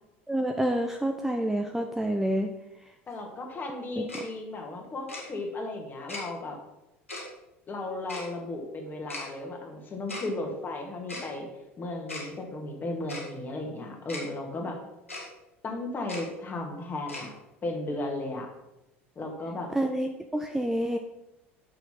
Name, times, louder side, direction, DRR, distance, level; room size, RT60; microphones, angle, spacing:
voice 1, 0.3-2.5 4.0-4.1 19.7-21.0, right 1 dB, 5° right, 4 dB, 0.7 m, -28 dB
voice 2, 3.1-6.6 7.7-11.5 11.8-14.8 15.6-17.3 17.6-18.5 19.2-19.7, left 2 dB, 30° left, 2 dB, 1.9 m, -35 dB
Tick-tock, 4.1-4.2 5.1-5.2 6.1-6.2 7.1-7.2 8.1-8.3 9.1-9.2 10.1-10.2 11.1-11.3 12.1-12.3 13.1-13.2 14.1-14.2 15.1-15.3 16.1-16.2 17.1-17.3, left 2 dB, 85° left, 1.9 m, -37 dB
6.6 x 6.1 x 5.7 m, 0.92 s
figure-of-eight pair, 70°, 7 cm